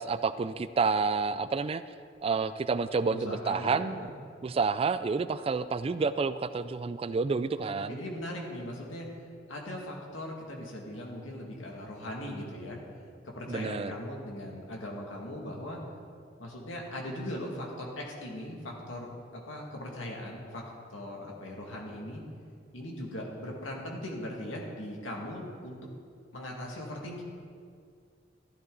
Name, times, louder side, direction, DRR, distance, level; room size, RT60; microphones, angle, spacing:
voice 1, 0.0-1.8 2.2-4.1 4.4-8.0 13.5-14.0, right 4 dB, 30° right, 13 dB, 0.3 m, -29 dB
voice 2, 3.1-4.1 7.6-9.1 9.5-12.8 13.2-15.8 16.4-20.6 20.9-22.2 22.7-25.8 26.3-27.2, left 1 dB, 90° left, -1 dB, 2.2 m, -39 dB
14.5 x 12.5 x 4.0 m, 2.2 s
head